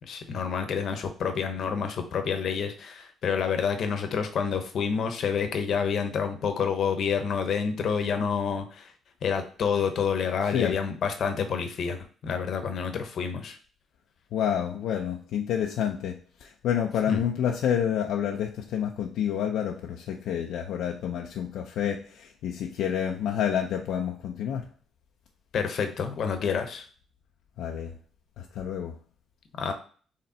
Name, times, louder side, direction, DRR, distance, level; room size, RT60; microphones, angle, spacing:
voice 1, 0.0-8.9 9.2-13.6 17.1-17.2 25.5-26.9 29.6-29.7, left 6 dB, 65° left, 0.8 m, -28 dB
voice 2, 14.3-24.7 27.6-27.9 28.4-29.0, left 9 dB, 80° left, 0.4 m, -29 dB
4.2 x 3.2 x 3.9 m
cardioid pair, 90°, 0 cm